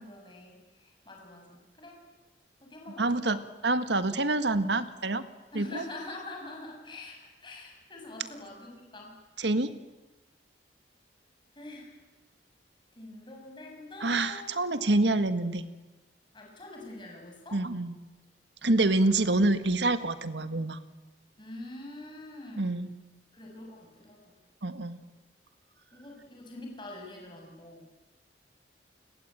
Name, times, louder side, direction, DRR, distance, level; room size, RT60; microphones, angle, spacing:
voice 1, 0.0-2.0 2.6-3.4 5.5-9.1 11.5-11.9 12.9-14.9 16.3-17.6 18.8-19.1 21.4-22.7 23.3-24.4 25.9-27.9, left 2 dB, 25° left, 0 dB, 6.9 m, -45 dB
voice 2, 3.0-5.2 5.5-5.8 9.4-9.7 14.0-15.6 17.5-17.9 18.6-20.8 22.6-22.9 24.6-25.0, right 2 dB, 80° right, 11 dB, 1.7 m, -27 dB
29.5 x 21.0 x 9.0 m, 1.2 s
head